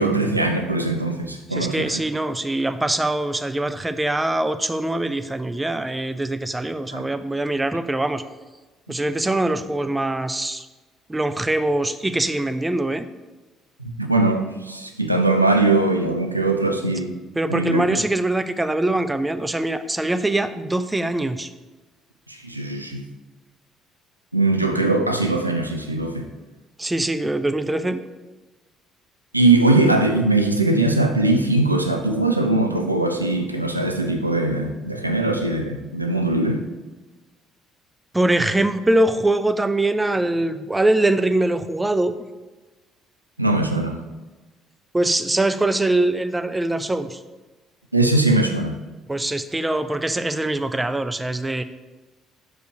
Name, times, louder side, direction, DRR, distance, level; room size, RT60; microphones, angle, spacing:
voice 1, 0.0-2.0 6.9-7.1 14.0-17.1 17.5-18.0 22.3-23.0 24.3-26.3 29.3-36.7 43.4-44.1 47.9-48.8, right 2 dB, 90° right, 5 dB, 0.4 m, -21 dB
voice 2, 1.5-8.2 8.9-10.7 11.1-13.0 17.4-21.5 26.8-28.0 38.1-42.1 44.9-47.2 49.1-51.6, right 2 dB, 15° right, 11 dB, 0.4 m, -23 dB
6.4 x 4.6 x 4.6 m, 1.2 s
figure-of-eight pair, 50°, 0 cm